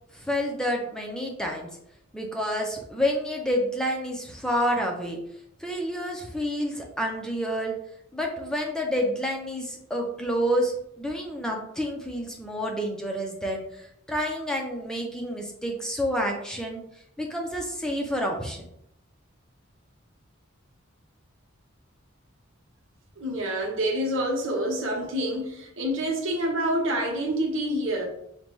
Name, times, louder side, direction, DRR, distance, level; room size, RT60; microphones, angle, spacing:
voice 1, 0.1-1.7 2.1-5.2 5.6-7.7 8.1-16.8 17.2-18.6, equal, 5° left, 0.5 m, -29 dB
voice 2, 23.2-28.0, right 1 dB, 80° right, 1.0 m, -27 dB
5.2 x 2.2 x 3.0 m
head